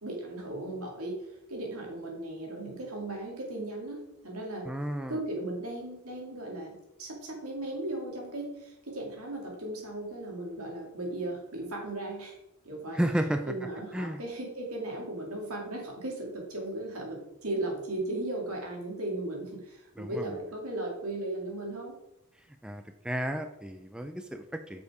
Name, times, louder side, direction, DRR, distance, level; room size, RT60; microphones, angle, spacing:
voice 1, 0.0-4.7 5.1-12.4 12.6-13.0 13.5-21.9, right 1 dB, 75° right, 0 dB, 2.2 m, -36 dB
voice 2, 4.7-5.2 12.9-13.5 13.9-14.2 20.0-20.3 22.6-24.8, right 1 dB, 5° right, 7 dB, 0.3 m, -32 dB
6.6 x 5.5 x 4.8 m, 0.86 s
head